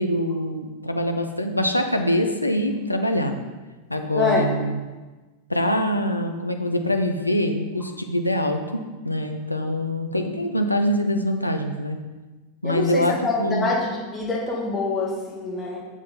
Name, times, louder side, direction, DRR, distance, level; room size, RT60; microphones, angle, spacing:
voice 1, 0.0-3.4 3.9-4.8 5.5-12.0 12.6-13.7, left 1 dB, 85° left, 5 dB, 0.8 m, -24 dB
voice 2, 4.1-4.6 12.6-15.8, left 3 dB, 15° left, -3 dB, 2.4 m, -25 dB
7.4 x 7.3 x 4.1 m, 1.2 s
figure-of-eight pair, 90°, 0 cm